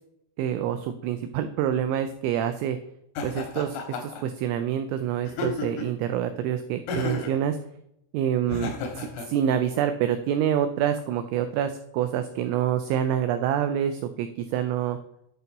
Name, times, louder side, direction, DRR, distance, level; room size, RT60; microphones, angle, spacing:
voice 1, 0.4-2.8 3.2-7.6 8.1-15.0, right 10 dB, 90° right, 8 dB, 2.6 m, -27 dB
Laughter, 3.2-4.2 5.3-6.0 6.9-7.4 8.5-9.3, left 3 dB, 90° left, 3.9 m, -32 dB
10.5 x 4.1 x 4.0 m, 0.77 s
omnidirectional pair, 5.9 m